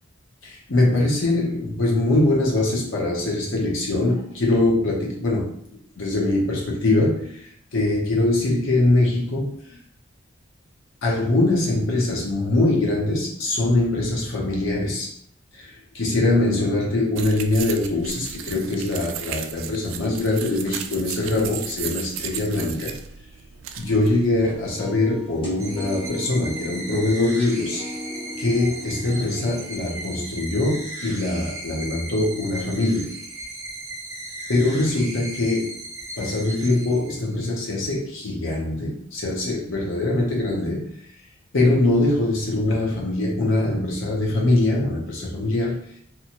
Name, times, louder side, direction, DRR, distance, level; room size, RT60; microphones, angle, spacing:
voice 1, 0.4-5.5 6.0-9.8 11.0-15.1 15.5-22.9 23.8-27.8 28.4-33.1 34.5-35.8 36.2-40.9 41.5-45.8, left 2 dB, 75° left, -2 dB, 0.8 m, -22 dB
sound 1, 17.2-24.7, right 8 dB, 80° right, 0.3 m, -35 dB
sound 2, 24.4-30.3, left 1 dB, 25° left, 0.9 m, -38 dB
sound 3, 25.6-37.5, right 1 dB, 15° right, 0.5 m, -37 dB
2.8 x 2.3 x 2.8 m, 0.65 s
head